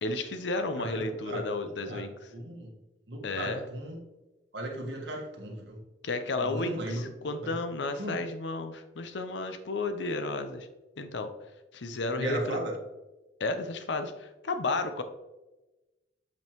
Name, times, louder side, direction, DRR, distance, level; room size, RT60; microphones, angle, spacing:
voice 1, 0.0-2.3 3.2-3.6 6.0-10.7 11.0-11.3 11.7-12.6 13.4-15.0, left 3 dB, 80° left, 8 dB, 0.6 m, -32 dB
voice 2, 0.8-1.4 1.8-2.0 2.3-2.7 3.1-4.0 4.5-5.8 6.4-7.6 8.0-8.2 12.2-12.8, right 1 dB, 80° right, 0 dB, 1.6 m, -36 dB
8.2 x 5.2 x 3.0 m, 1.1 s
head